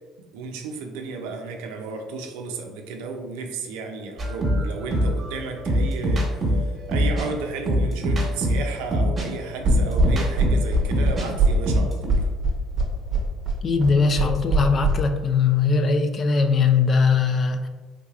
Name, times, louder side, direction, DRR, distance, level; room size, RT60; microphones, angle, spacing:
voice 1, 0.3-12.3, right 4 dB, 85° right, 3 dB, 0.5 m, -33 dB
sound 1, 4.2-11.3 11.5-12.1, equal, 30° right, 1.1 m, -23 dB
sound 2, 9.6-14.9, right 2 dB, 50° right, 0.7 m, -21 dB
voice 2, 13.6-17.7, left 5 dB, 40° left, 7 dB, 0.3 m, -20 dB
3.5 x 3.2 x 2.4 m, 1.4 s
supercardioid pair, 100°, 0 cm